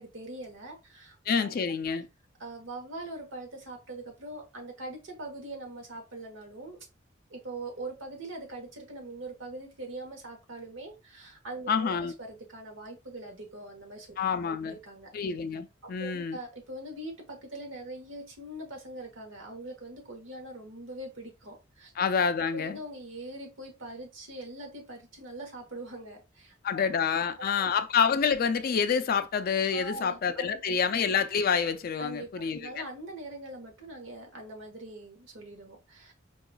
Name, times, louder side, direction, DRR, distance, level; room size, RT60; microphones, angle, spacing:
voice 1, 0.0-1.5 2.4-6.8 7.3-14.1 14.6-15.1 16.0-21.9 22.5-26.8 27.4-27.7 29.7-30.8 32.0-36.1, right 2 dB, 75° right, 1.1 m, -42 dB
voice 2, 1.3-2.1 11.7-12.1 14.2-14.8 15.1-16.4 22.0-22.8 26.6-32.8, left 6 dB, 50° left, 0.4 m, -27 dB
4.7 x 2.3 x 2.2 m
head